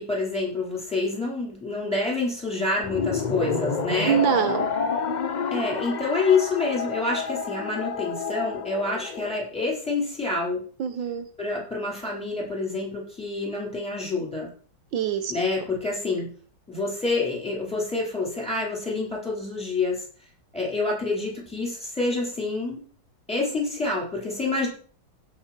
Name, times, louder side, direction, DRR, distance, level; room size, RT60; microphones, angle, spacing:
voice 1, 0.0-4.2 5.5-10.6 11.4-14.5 15.3-16.3 16.7-20.0 20.5-22.8 23.3-24.7, left 3 dB, 5° left, -3 dB, 4.4 m, -27 dB
sound 1, 2.8-9.4, left 5 dB, 50° left, 0.5 m, -29 dB
voice 2, 4.0-4.7 10.8-11.3 14.9-15.3, right 9 dB, 80° right, 9 dB, 1.7 m, -24 dB
16.0 x 5.9 x 4.5 m, 0.43 s
omnidirectional pair, 2.1 m